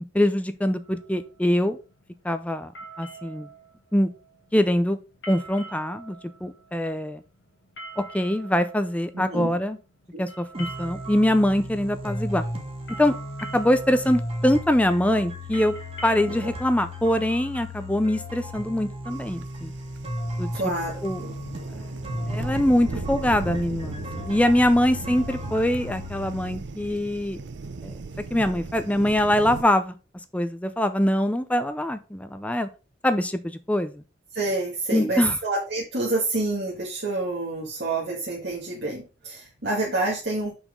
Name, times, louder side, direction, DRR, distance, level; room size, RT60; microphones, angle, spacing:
voice 1, 0.1-1.8 2.2-2.7 3.0-3.5 3.9-4.1 4.5-5.0 5.3-7.2 8.0-9.8 10.2-12.4 13.0-13.1 13.5-15.7 16.0-19.7 20.4-20.5 21.0-21.2 22.3-27.4 27.8-27.9 28.3-29.9 30.3-32.7 33.0-34.0 34.9-35.4, left 1 dB, 10° left, 10 dB, 0.5 m, -23 dB
sound 1, 0.8-18.0, right 3 dB, 80° left, 1.9 m, -45 dB
voice 2, 9.1-9.6 10.1-10.2 16.3-16.4 20.5-21.0 34.3-40.5, right 2 dB, 65° right, -4 dB, 1.8 m, -28 dB
sound 2, 10.5-26.6, left 1 dB, 35° right, 2.0 m, -35 dB
sound 3, 19.1-29.6, right 3 dB, 80° right, 0.6 m, -37 dB
6.0 x 4.2 x 5.1 m, 0.32 s
head